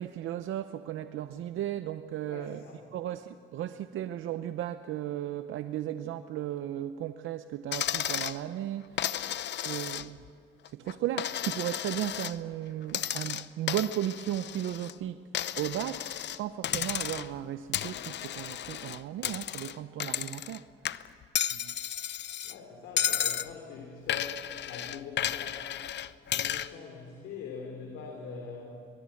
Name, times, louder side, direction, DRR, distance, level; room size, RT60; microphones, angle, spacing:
voice 1, 0.0-2.6 2.9-10.3 10.7-15.2 15.6-20.7 21.5-21.7, right 12 dB, 80° right, 11 dB, 0.7 m, -35 dB
voice 2, 2.3-2.8 22.4-25.7 26.3-28.7, left 5 dB, 90° left, 2 dB, 3.2 m, -43 dB
Coin (dropping), 7.7-8.4 9.0-10.3 10.6-12.4 12.9-14.9 15.3-16.4 16.6-17.4 17.7-20.6 20.8-22.5 23.0-23.5 24.1-26.7, left 11 dB, 65° left, 0.7 m, -33 dB
23.0 x 21.0 x 8.5 m, 2.6 s
cardioid pair, 90°, 20 cm